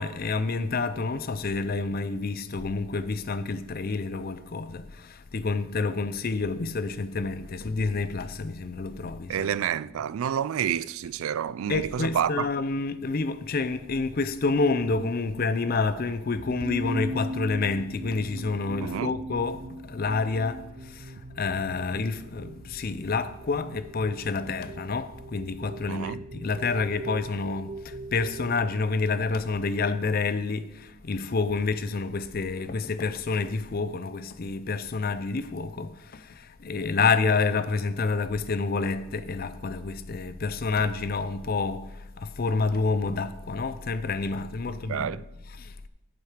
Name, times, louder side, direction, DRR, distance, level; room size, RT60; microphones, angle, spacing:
voice 1, 0.0-9.5 11.7-45.7, left 4 dB, 45° left, 0.5 m, -28 dB
voice 2, 9.3-12.4 18.8-19.1 25.9-26.2 44.9-45.2, right 9 dB, 75° right, 0.3 m, -29 dB
sound 1, 16.3-28.7, right 1 dB, 35° right, 0.7 m, -39 dB
8.5 x 8.0 x 5.0 m
head